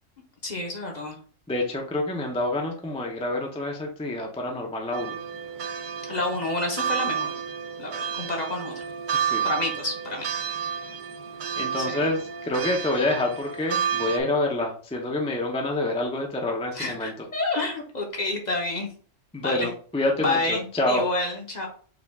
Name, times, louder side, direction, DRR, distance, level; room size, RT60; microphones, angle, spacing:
voice 1, 0.4-1.2 6.1-7.4 7.8-8.9 9.4-10.3 10.6-10.8 11.8-12.1 16.7-18.9 19.4-19.7 20.2-21.7, left 2 dB, 40° left, 1 dB, 0.8 m, -29 dB
voice 2, 1.5-5.2 9.1-9.4 11.6-17.1 19.3-21.1, left 2 dB, 10° left, 0 dB, 0.4 m, -27 dB
sound 1, 4.9-14.2, right 7 dB, 65° right, 0.5 m, -31 dB
4.9 x 2.3 x 3.5 m, 0.43 s
omnidirectional pair, 1.3 m